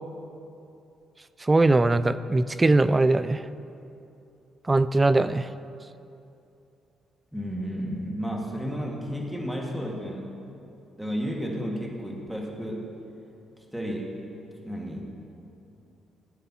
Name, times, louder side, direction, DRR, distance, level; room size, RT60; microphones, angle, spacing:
voice 1, 1.4-3.4 4.7-5.5, right 2 dB, 20° right, 13 dB, 0.3 m, -21 dB
voice 2, 7.3-10.3 11.0-12.9 13.7-14.1 14.6-15.0, equal, 5° right, -2 dB, 1.8 m, -32 dB
16.0 x 9.1 x 2.9 m, 2.7 s
cardioid pair, 90°, 0 cm